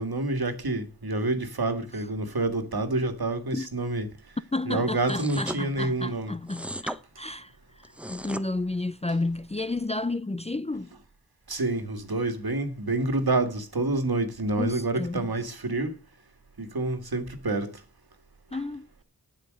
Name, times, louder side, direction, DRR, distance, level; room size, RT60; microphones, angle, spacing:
voice 1, 0.0-4.2 4.7-6.4 11.5-16.0 16.6-17.8, right 2 dB, 70° right, 2.0 m, -28 dB
voice 2, 4.5-7.5 7.8-10.9 14.6-15.3 18.5-18.9, left 2 dB, 15° left, 0.5 m, -31 dB
sound 1, 5.1-5.6 6.5-7.0 7.8-8.5, equal, 5° right, 0.8 m, -36 dB
9.1 x 7.9 x 6.4 m
wide cardioid pair, 45°, 39 cm